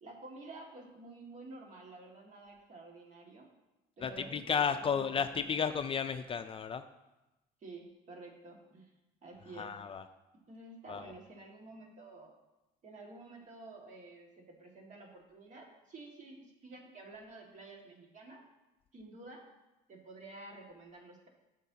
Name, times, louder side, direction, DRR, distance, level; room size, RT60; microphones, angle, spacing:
voice 1, 0.0-3.5 4.0-5.2 7.6-8.9 9.2-9.8 10.5-12.3 12.8-18.4 18.9-19.4 19.9-21.3, right 2 dB, 45° right, 0 dB, 2.0 m, -51 dB
voice 2, 4.0-6.8 9.6-10.0 10.9-11.1, left 6 dB, 35° left, 9 dB, 0.4 m, -33 dB
12.0 x 6.5 x 2.8 m, 1.0 s
cardioid pair, 110°, 17 cm